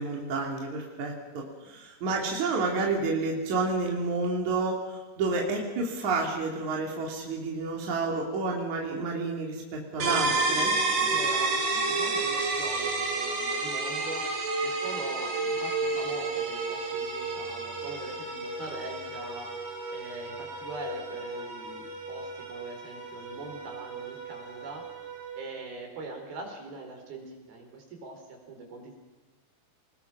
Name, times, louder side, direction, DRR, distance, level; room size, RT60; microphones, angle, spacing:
voice 1, 0.0-10.7, right 3 dB, 50° right, 0 dB, 4.0 m, -30 dB
sound 1, 10.0-25.6, right 3 dB, 90° right, 6.8 m, -31 dB
voice 2, 10.9-19.5 19.9-24.9 25.4-28.9, right 3 dB, 65° right, 2 dB, 6.0 m, -42 dB
27.0 x 20.5 x 6.0 m, 1.3 s
omnidirectional pair, 4.6 m